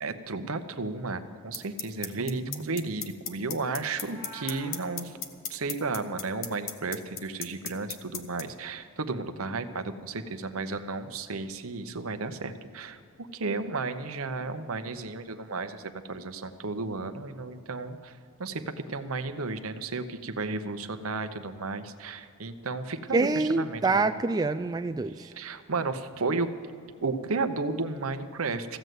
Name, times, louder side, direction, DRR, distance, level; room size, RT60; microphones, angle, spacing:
voice 1, 0.0-5.2 5.5-18.1 18.4-24.1 25.2-26.5 27.0-28.8, right 3 dB, 80° right, 9 dB, 0.9 m, -33 dB
sound 1, 1.5-8.4, left 8 dB, 60° left, 1.0 m, -33 dB
voice 2, 2.3-2.8 23.1-25.3, right 3 dB, 20° right, 7 dB, 0.3 m, -27 dB
Meow, 3.9-4.8, right 1 dB, 10° left, 3.0 m, -45 dB
15.0 x 8.0 x 9.3 m, 2.3 s
head